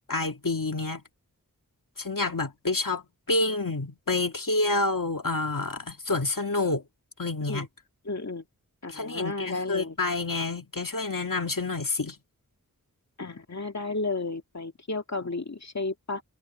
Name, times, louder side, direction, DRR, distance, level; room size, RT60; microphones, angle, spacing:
voice 1, 0.1-1.0 2.0-3.0 3.3-6.8 7.2-7.7 8.9-12.2, left 2 dB, 70° left, 2.4 m, -28 dB
voice 2, 8.1-8.4 8.8-10.0 13.2-16.2, left 3 dB, 50° left, 2.4 m, -33 dB
wide cardioid pair, 55°, 34 cm